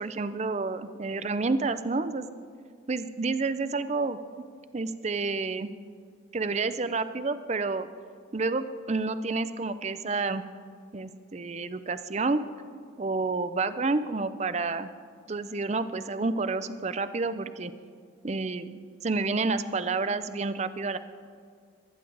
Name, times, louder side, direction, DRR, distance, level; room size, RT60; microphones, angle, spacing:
voice 1, 0.0-2.3 2.9-4.2 4.7-5.7 6.3-7.9 8.3-10.4 10.9-12.4 13.0-14.9 15.3-17.7 18.2-21.0, right 3 dB, 35° right, 12 dB, 0.5 m, -29 dB
24.0 x 10.0 x 3.9 m, 2.2 s
head